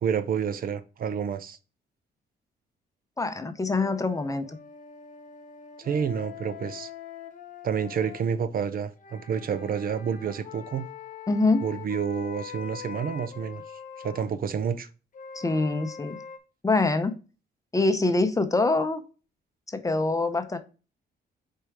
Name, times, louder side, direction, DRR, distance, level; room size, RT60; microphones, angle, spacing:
voice 1, 0.0-1.6 5.8-6.9 7.6-10.9 11.6-13.6 14.0-14.9, right 7 dB, 50° right, 0.6 m, -29 dB
voice 2, 3.2-4.6 11.3-11.6 15.3-16.2 16.6-17.1 17.7-19.0 19.7-20.6, left 3 dB, 15° left, 0.7 m, -24 dB
sound 1, 3.7-8.2 8.9-14.3 15.1-16.4, left 7 dB, 45° left, 1.1 m, -43 dB
5.0 x 4.4 x 4.7 m
cardioid pair, 125°, 19 cm